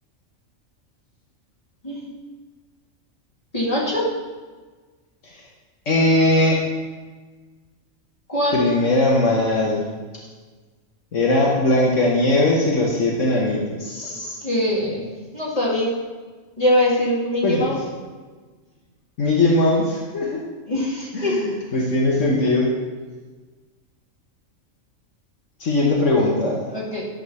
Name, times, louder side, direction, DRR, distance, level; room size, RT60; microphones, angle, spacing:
voice 1, 3.5-4.1 8.3-8.6 14.1-14.2 14.4-15.0 15.3-15.9 16.6-17.8 20.7-21.5 26.7-27.1, left 1 dB, 30° left, -7 dB, 2.5 m, -22 dB
voice 2, 5.9-6.6 8.5-9.8 11.1-14.4 17.4-17.7 19.2-20.4 21.1-22.7 25.6-26.6, left 2 dB, 70° left, -3 dB, 1.5 m, -19 dB
11.0 x 3.9 x 6.9 m, 1.4 s
omnidirectional pair, 1.4 m